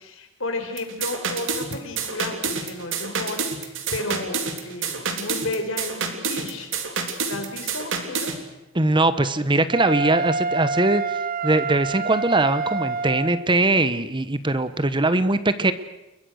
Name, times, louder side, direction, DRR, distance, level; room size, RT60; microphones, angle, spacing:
voice 1, 0.0-6.7 7.3-8.3, left 2 dB, 65° left, 6 dB, 4.7 m, -33 dB
sound 1, 0.8-8.4, right 5 dB, 65° right, 3.3 m, -28 dB
voice 2, 8.7-15.7, right 2 dB, 25° right, 12 dB, 1.1 m, -21 dB
Wind instrument woodwind instrument, 9.7-13.5, right 4 dB, 45° right, 0.8 m, -27 dB
29.5 x 22.5 x 6.5 m, 0.99 s
head